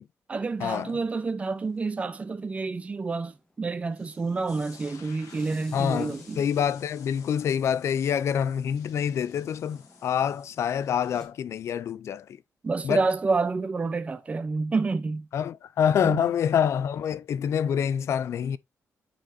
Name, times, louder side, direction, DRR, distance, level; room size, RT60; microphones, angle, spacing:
voice 1, 0.3-6.4 12.6-15.3 16.0-16.3, right 4 dB, 25° right, 0.6 m, -29 dB
sound 1, 1.5-11.3, left 2 dB, 10° left, 1.3 m, -54 dB
sound 2, 4.5-11.3, left 6 dB, 85° left, 1.3 m, -52 dB
voice 2, 5.7-12.2 12.8-13.0 15.3-18.6, left 8 dB, 60° left, 0.4 m, -26 dB
9.1 x 4.2 x 2.6 m
wide cardioid pair, 155°, 5 cm